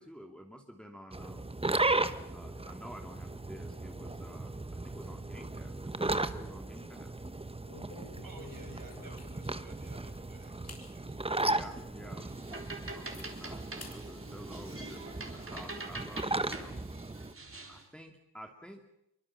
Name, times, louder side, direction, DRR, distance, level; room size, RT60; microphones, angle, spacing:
voice 1, 0.0-1.5 2.3-7.2 11.3-12.3 12.9-16.9 17.7-18.8, equal, ahead, 3 dB, 2.5 m, -50 dB
sound 1, 1.1-17.3, right 2 dB, 15° right, 1.1 m, -36 dB
voice 2, 4.5-4.8 8.2-11.2, right 3 dB, 50° right, 2 dB, 7.0 m, -55 dB
sound 2, 7.0-7.1 7.6-9.7 10.2-10.3 10.6-10.9 11.4-11.5 12.0-12.1 12.4-13.3 13.8-14.0 14.4-15.3, left 3 dB, 40° left, 7.8 m, -51 dB
sound 3, 12.2-17.9, right 2 dB, 30° right, 3.9 m, -45 dB
25.0 x 23.5 x 7.4 m, 0.80 s
wide cardioid pair, 105°, 42 cm